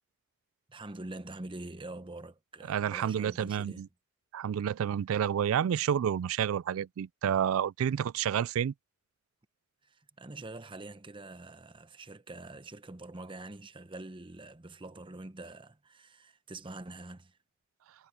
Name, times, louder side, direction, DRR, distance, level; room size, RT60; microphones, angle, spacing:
voice 1, 0.7-3.8 9.8-17.4, right 2 dB, 25° right, 0.9 m, -45 dB
voice 2, 2.7-3.9 4.3-8.7, right 9 dB, 80° right, 0.3 m, -29 dB
head